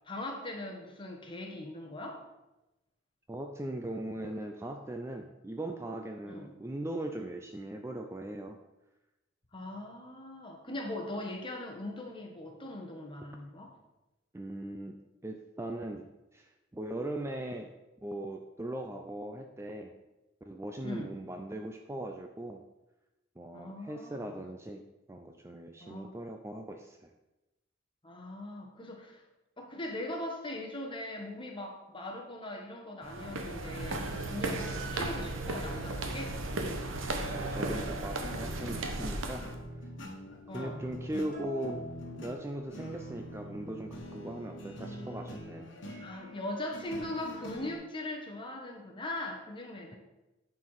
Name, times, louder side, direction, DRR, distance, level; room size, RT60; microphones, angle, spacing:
voice 1, 0.1-2.2 4.2-4.3 6.3-6.5 9.5-13.7 20.8-21.1 23.5-24.4 25.8-26.1 28.0-29.2 29.6-36.4 40.5-40.8 46.0-50.0, left 1 dB, 25° left, 2 dB, 1.4 m, -40 dB
voice 2, 3.3-8.6 14.3-17.7 18.0-19.9 20.4-22.6 23.4-27.1 37.3-39.5 40.5-41.9 42.2-45.7, right 1 dB, 15° right, 4 dB, 0.5 m, -39 dB
sound 1, 33.0-39.6, right 2 dB, 85° right, 1.1 m, -35 dB
sound 2, 38.2-47.7, equal, 65° left, 1.5 m, -45 dB
sound 3, 41.3-43.1, left 2 dB, 50° right, 1.9 m, -44 dB
9.4 x 4.6 x 5.7 m, 1.0 s
head